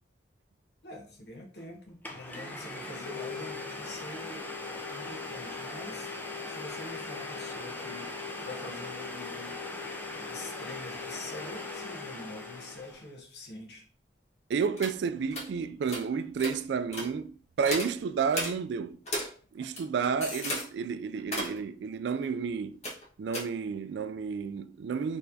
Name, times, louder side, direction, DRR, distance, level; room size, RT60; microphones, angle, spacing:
voice 1, 0.8-4.5 4.9-6.1 6.5-9.6 10.3-13.9, left 1 dB, 60° left, 1.1 m, -45 dB
Domestic sounds home sounds, 1.6-1.7 2.0-13.1, left 3 dB, 10° left, 0.5 m, -39 dB
voice 2, 14.5-19.0 19.5-22.8 23.2-25.2, right 6 dB, 65° right, 0.3 m, -31 dB
sound 1, 14.8-14.9 15.3-15.5 15.9-16.0 16.4-16.6 16.9-17.1 17.6-17.9 18.3-18.5 19.1-19.3 19.6-20.6 21.2-21.6 22.8-23.0 23.3-23.4, left 1 dB, 40° left, 1.3 m, -34 dB
4.3 x 3.3 x 2.7 m
head